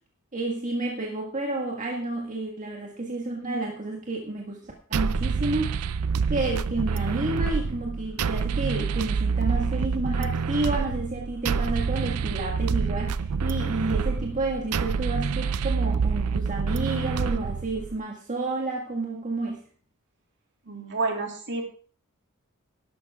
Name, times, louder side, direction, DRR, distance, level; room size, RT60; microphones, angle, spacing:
voice 1, 0.3-6.0 6.3-19.6, right 2 dB, 35° right, 0 dB, 1.7 m, -30 dB
sound 1, 4.9-18.0, right 5 dB, 80° right, 0.5 m, -27 dB
voice 2, 20.6-21.6, right 3 dB, 55° right, 2 dB, 3.0 m, -29 dB
12.5 x 12.0 x 3.6 m, 0.42 s
head